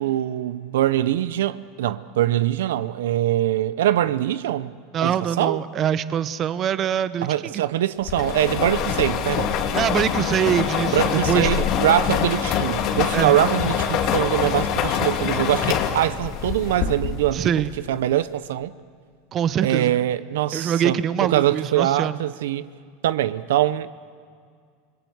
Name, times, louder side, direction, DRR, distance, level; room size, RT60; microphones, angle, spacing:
voice 1, 0.0-4.7 5.0-5.6 7.2-9.5 10.9-17.5 17.9-18.7 19.6-22.7 23.0-23.9, right 12 dB, 85° right, 0.7 m, -23 dB
voice 2, 4.9-7.6 9.7-11.6 13.1-13.4 17.3-17.7 19.3-19.9 20.5-22.2, right 9 dB, 35° right, 0.8 m, -24 dB
sound 1, 8.1-17.4, left 8 dB, 50° left, 2.2 m, -24 dB
28.0 x 21.0 x 8.0 m
supercardioid pair, 130°, 0 cm